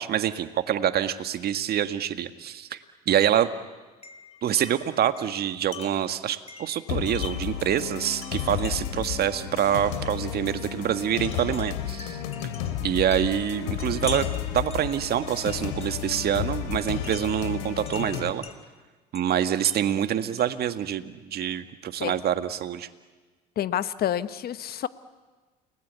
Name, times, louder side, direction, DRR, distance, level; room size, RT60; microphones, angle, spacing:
voice 1, 0.0-2.8 3.1-3.5 4.4-12.2 12.8-14.3 14.5-18.4 19.1-22.9, right 10 dB, 50° right, 9 dB, 1.8 m, -26 dB
Wind chime, 3.1-3.5 4.0-7.6 8.2-9.0 9.9-10.2 11.2-16.2 17.0-18.6 19.1-20.7, left 5 dB, 30° left, 2.9 m, -45 dB
sound 1, 6.9-18.3, left 10 dB, 75° left, 3.1 m, -32 dB
voice 2, 23.6-24.9, left 10 dB, 50° left, 13 dB, 1.3 m, -28 dB
30.0 x 20.5 x 8.4 m, 1.3 s
hypercardioid pair, 70°, 21 cm